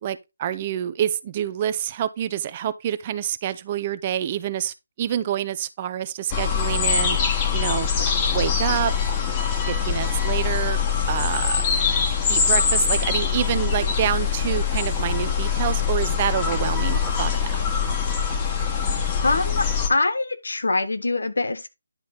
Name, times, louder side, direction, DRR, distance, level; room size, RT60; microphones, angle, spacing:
voice 1, 0.0-7.2 7.5-7.9 8.3-8.9 9.7-10.8 11.1-11.6 12.3-17.6, right 10 dB, 25° right, 0.5 m, -27 dB
sound 1, 6.3-19.9, left 6 dB, 20° left, 1.3 m, -23 dB
voice 2, 19.2-21.7, left 2 dB, 65° left, 1.3 m, -24 dB
10.5 x 4.0 x 4.0 m
figure-of-eight pair, 150°, 0 cm